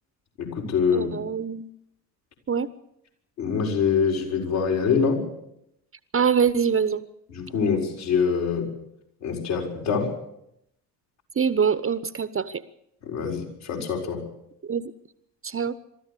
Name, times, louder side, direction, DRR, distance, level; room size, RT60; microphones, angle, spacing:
voice 1, 0.4-1.2 3.4-5.3 7.3-8.7 9.2-10.1 13.0-14.2, left 6 dB, 65° left, -1 dB, 4.7 m, -25 dB
voice 2, 0.9-1.7 2.5-2.7 6.1-7.0 11.4-12.6 14.7-14.9 15.4-15.8, right 6 dB, 25° right, 15 dB, 1.0 m, -24 dB
23.5 x 13.5 x 8.4 m, 0.79 s
figure-of-eight pair, 45°, 50 cm